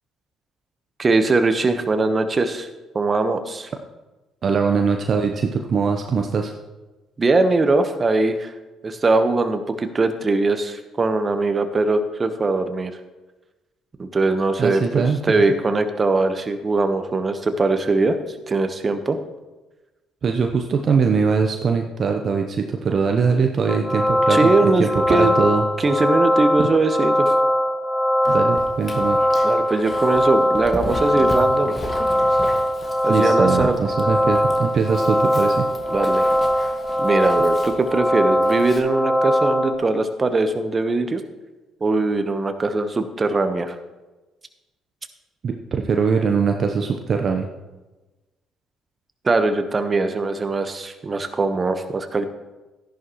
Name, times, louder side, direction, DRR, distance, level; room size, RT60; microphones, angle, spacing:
voice 1, 1.0-2.7 2.9-3.7 7.2-8.5 8.8-12.9 14.0-18.2 18.5-19.2 24.3-25.3 25.8-27.1 29.4-31.8 33.0-33.8 35.9-36.3 37.0-41.2 41.8-43.7 49.2-52.3, right 3 dB, 35° right, 8 dB, 1.1 m, -21 dB
voice 2, 4.4-6.5 14.6-15.4 20.2-25.6 26.6-26.7 28.3-29.2 33.1-35.6 45.4-47.5, right 5 dB, 50° right, 3 dB, 0.9 m, -21 dB
sound 1, 23.7-39.7, equal, 15° left, 1.2 m, -20 dB
Dog, 28.2-38.8, left 1 dB, 30° left, 1.8 m, -36 dB
13.0 x 11.0 x 3.1 m, 1.1 s
hypercardioid pair, 50°, 0 cm